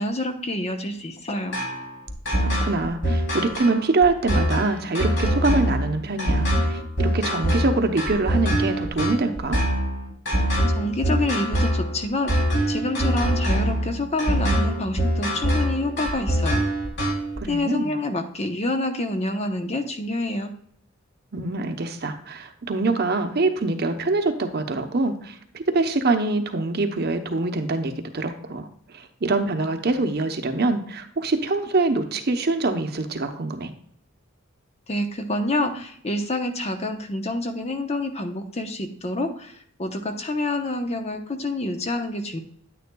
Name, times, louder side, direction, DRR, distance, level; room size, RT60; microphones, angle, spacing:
voice 1, 0.0-1.6 10.7-16.6 17.5-20.5 34.9-42.4, left 1 dB, 30° left, 6 dB, 0.8 m, -27 dB
sound 1, 1.5-17.4, equal, 60° left, 3.1 m, -24 dB
voice 2, 2.4-9.6 17.4-17.9 21.3-33.7, right 3 dB, 50° right, 7 dB, 0.8 m, -24 dB
9.5 x 9.3 x 2.3 m, 0.64 s
head